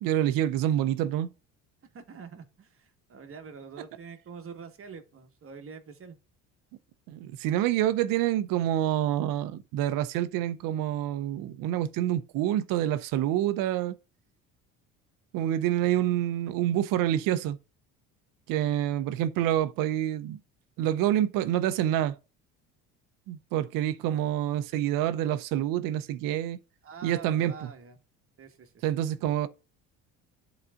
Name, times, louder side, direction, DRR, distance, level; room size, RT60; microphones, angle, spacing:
voice 1, 0.0-1.3 7.1-14.0 15.3-17.6 18.5-20.4 20.8-22.1 23.3-26.6 27.0-27.7 28.8-29.5, right 12 dB, 70° right, 0.8 m, -27 dB
voice 2, 1.9-6.2 26.8-28.0 28.4-28.8, right 5 dB, 40° right, 1.5 m, -45 dB
11.0 x 4.1 x 2.5 m
supercardioid pair, 85°, 34 cm